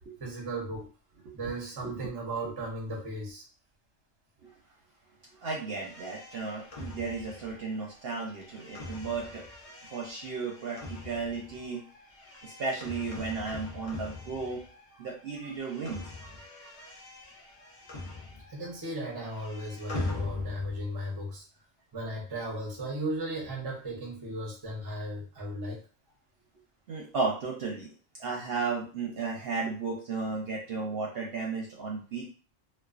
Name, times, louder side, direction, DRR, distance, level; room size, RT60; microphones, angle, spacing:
voice 1, 0.2-0.9 1.3-3.4 15.4-15.5 15.8-15.9 16.2-16.3 18.5-21.4 21.9-25.8, right 1 dB, 30° right, -1 dB, 0.4 m, -36 dB
voice 2, 5.4-9.4 9.8-11.8 12.4-14.6 15.0-16.0 26.9-27.9 28.2-32.3, right 4 dB, 60° right, -2 dB, 0.7 m, -34 dB
sound 1, 5.7-15.0 15.2-18.7 19.0-20.9, left 2 dB, 55° left, 0.4 m, -42 dB
2.3 x 2.2 x 2.3 m, 0.39 s
omnidirectional pair, 1.4 m